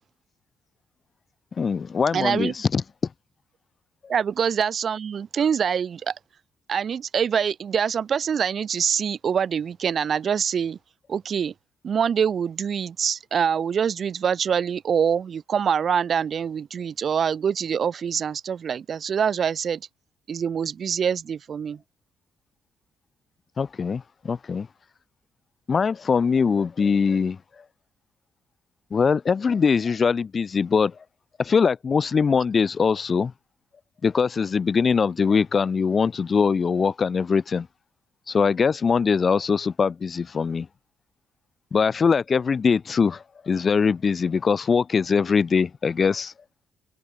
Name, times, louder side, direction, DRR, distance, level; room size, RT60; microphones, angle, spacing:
voice 1, 1.6-2.8 23.6-24.7 25.7-27.4 28.9-30.9 31.4-33.3 34.0-37.7 38.3-40.7 41.7-46.3, left 5 dB, 40° left, 0.6 m, -22 dB
voice 2, 2.1-2.5 4.1-6.1 6.7-10.8 11.1-11.5 11.8-19.8 20.3-21.8, right 7 dB, 50° right, 2.1 m, -25 dB
open air
cardioid pair, 90°, 0 cm